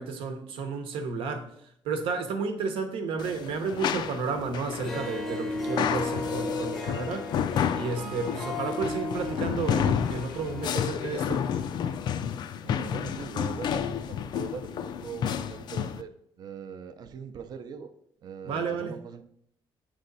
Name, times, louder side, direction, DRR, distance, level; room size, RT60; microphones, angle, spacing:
voice 1, 0.0-1.5 1.8-7.4 7.7-11.5 18.4-19.0, right 4 dB, 80° right, 0.9 m, -32 dB
sound 1, 3.2-16.0, left 8 dB, 55° left, 0.4 m, -31 dB
Harp, 4.7-12.1, left 1 dB, ahead, 0.7 m, -36 dB
voice 2, 8.0-8.3 12.6-16.1 16.4-17.9 18.2-19.2, right 7 dB, 50° right, 0.5 m, -41 dB
8.3 x 3.3 x 3.9 m
cardioid pair, 150°, 9 cm